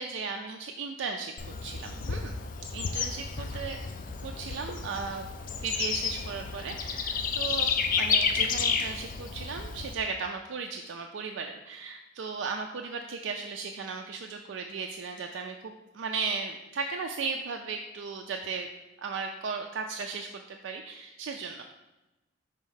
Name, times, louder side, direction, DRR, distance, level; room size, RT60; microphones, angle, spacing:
voice 1, 0.0-1.3 1.6-2.4 2.7-3.8 4.2-5.3 5.6-7.7 8.0-18.7 19.0-21.6, right 5 dB, 80° right, 3 dB, 0.4 m, -36 dB
Bird / Insect, 1.4-9.9, left 6 dB, 45° left, 0.4 m, -31 dB
5.2 x 3.5 x 5.6 m, 1.0 s
head